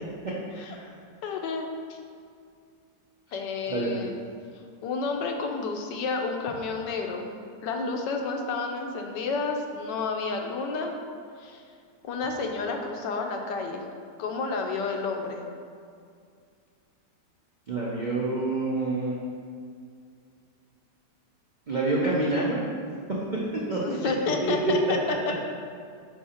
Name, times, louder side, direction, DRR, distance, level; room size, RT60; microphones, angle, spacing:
voice 1, 1.2-2.0 3.3-4.2 4.8-7.3 7.6-10.9 11.4-11.6 12.0-13.8 14.2-15.4 23.8-25.0 25.3-25.4, left 4 dB, 80° left, 3 dB, 1.3 m, -30 dB
voice 2, 3.7-4.0 17.7-19.1 21.7-22.6 23.7-23.8 24.4-24.7, right 2 dB, 70° right, -5 dB, 0.4 m, -27 dB
5.0 x 4.6 x 4.2 m, 2.3 s
omnidirectional pair, 1.9 m